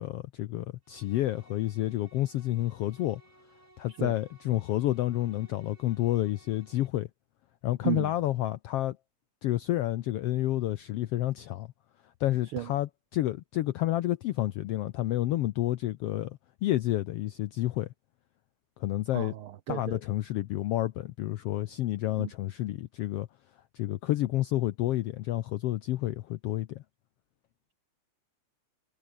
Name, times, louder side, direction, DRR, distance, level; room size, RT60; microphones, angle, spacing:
voice 1, 0.0-3.2 3.8-7.1 7.6-9.0 9.4-11.7 12.2-17.9 18.8-19.3 19.7-23.3 23.7-26.8, left 15 dB, 80° left, 1.3 m, -30 dB
sound 1, 0.8-6.9, right 2 dB, 30° right, 8.0 m, -60 dB
voice 2, 19.1-20.0 22.2-22.3, right 13 dB, 85° right, 1.2 m, -33 dB
omnidirectional pair, 3.5 m